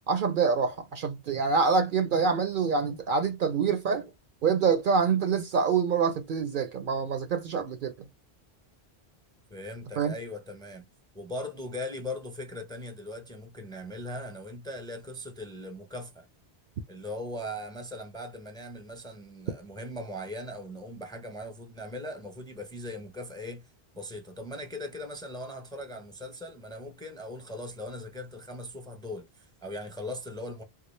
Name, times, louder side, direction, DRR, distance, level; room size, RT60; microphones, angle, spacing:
voice 1, 0.1-4.1 4.4-7.9 10.0-10.1, right 5 dB, 60° right, 0.7 m, -26 dB
voice 2, 9.5-10.9 11.1-16.3 16.9-23.7 23.9-30.6, left 1 dB, 5° left, 0.6 m, -39 dB
3.7 x 2.3 x 3.1 m
omnidirectional pair, 1.1 m